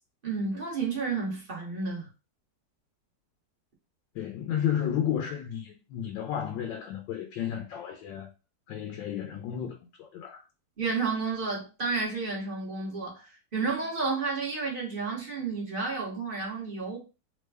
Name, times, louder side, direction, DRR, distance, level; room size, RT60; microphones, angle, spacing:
voice 1, 0.2-2.1 10.8-17.0, right 4 dB, 35° right, 1.0 m, -31 dB
voice 2, 4.1-8.3 8.7-10.4, left 9 dB, 90° left, 1.3 m, -32 dB
3.3 x 2.1 x 3.3 m
omnidirectional pair, 1.9 m